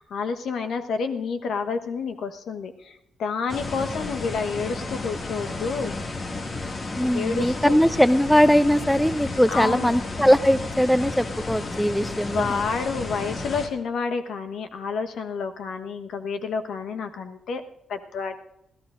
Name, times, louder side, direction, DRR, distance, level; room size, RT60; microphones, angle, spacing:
voice 1, 0.0-5.9 7.1-7.7 9.5-9.9 12.2-17.6 17.9-18.4, left 5 dB, 70° left, 8 dB, 1.1 m, -29 dB
sound 1, 3.5-13.7, left 2 dB, 50° left, 2.0 m, -32 dB
voice 2, 7.0-12.6, equal, 5° left, 15 dB, 0.6 m, -20 dB
26.5 x 14.5 x 2.5 m, 0.78 s
hypercardioid pair, 50°, 0 cm